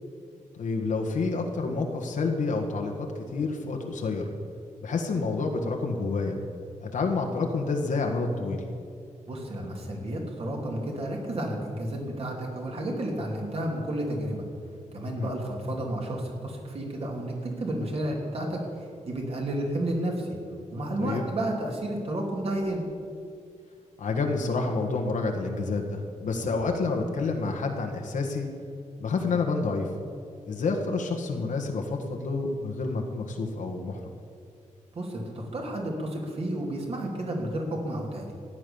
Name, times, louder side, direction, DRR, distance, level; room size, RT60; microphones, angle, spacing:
voice 1, 0.6-4.3 4.8-6.4 6.8-8.6 15.1-15.3 21.0-21.2 24.0-28.5 29.0-29.9 30.4-34.1, left 3 dB, 85° left, 2 dB, 1.6 m, -29 dB
voice 2, 9.3-14.4 14.9-20.4 20.7-22.8 34.9-38.3, right 1 dB, 50° right, 0 dB, 2.9 m, -31 dB
14.5 x 10.0 x 7.1 m, 2.3 s
wide cardioid pair, 165°, 13 cm